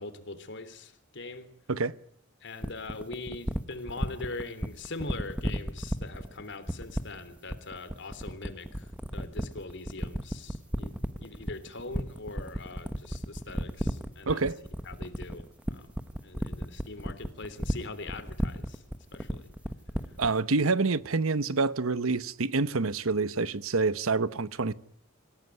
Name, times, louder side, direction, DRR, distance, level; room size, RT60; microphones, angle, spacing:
voice 1, 0.0-1.5 2.4-10.9 11.2-14.5 14.8-15.9 16.2-18.8 19.1-19.5, left 3 dB, 60° left, 3.2 m, -42 dB
sound 1, 2.6-20.4, equal, 5° right, 1.2 m, -32 dB
voice 2, 14.3-14.6 20.2-24.7, right 3 dB, 85° right, 1.0 m, -27 dB
26.5 x 17.0 x 9.5 m
head